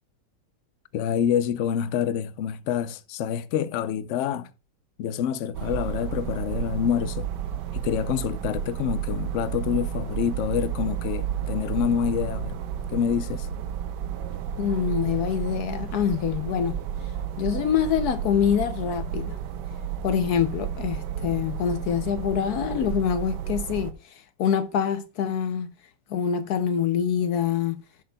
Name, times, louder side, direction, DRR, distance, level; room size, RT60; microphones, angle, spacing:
voice 1, 0.9-4.5 5.0-7.3 7.7-12.6 12.9-13.5, left 9 dB, 90° left, 0.6 m, -27 dB
sound 1, 5.5-23.9, right 9 dB, 75° right, 1.3 m, -32 dB
voice 2, 14.6-19.4 20.0-25.7 26.1-27.8, left 8 dB, 70° left, 1.0 m, -25 dB
15.5 x 6.7 x 2.2 m
omnidirectional pair, 2.0 m